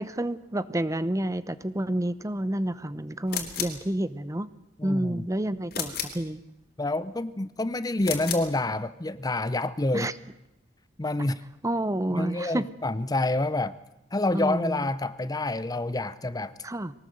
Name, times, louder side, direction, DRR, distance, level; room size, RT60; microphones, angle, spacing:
voice 1, 0.0-4.5 4.8-6.4 9.9-10.1 11.6-12.7 14.3-14.9 16.6-16.9, right 1 dB, 20° right, 15 dB, 0.8 m, -29 dB
sound 1, 3.3-3.8 5.7-6.2 8.0-8.5, left 8 dB, 60° left, 3.3 m, -32 dB
voice 2, 4.8-5.2 6.8-10.1 11.0-11.4 12.1-13.7 14.1-16.5, left 2 dB, 20° left, 15 dB, 0.7 m, -28 dB
23.0 x 18.5 x 7.8 m, 0.88 s
head